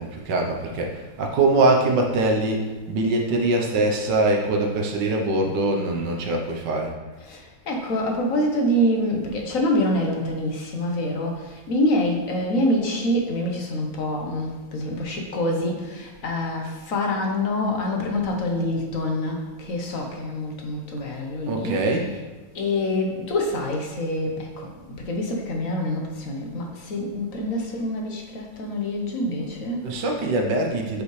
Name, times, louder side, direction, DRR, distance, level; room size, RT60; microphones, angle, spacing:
voice 1, 0.0-6.9 21.5-22.1 29.8-31.0, right 2 dB, 75° right, 1 dB, 1.6 m, -23 dB
voice 2, 7.2-22.2 22.5-30.0, left 1 dB, 55° left, 1 dB, 1.3 m, -26 dB
9.1 x 5.1 x 3.2 m, 1.2 s
omnidirectional pair, 1.9 m